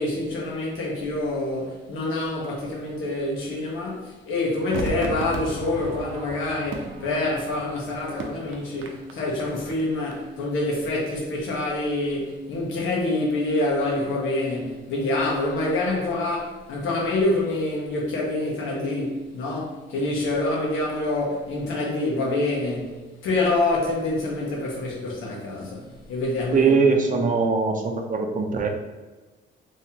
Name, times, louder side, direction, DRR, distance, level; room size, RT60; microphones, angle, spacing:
voice 1, 0.0-26.7 27.1-27.2, left 2 dB, 85° left, 1.2 m, -26 dB
Crowd / Fireworks, 4.7-10.1 10.4-10.5, right 3 dB, 85° right, 0.6 m, -35 dB
voice 2, 26.5-28.7, right 4 dB, 40° right, 0.6 m, -21 dB
3.6 x 3.1 x 2.9 m
cardioid pair, 90°, 20 cm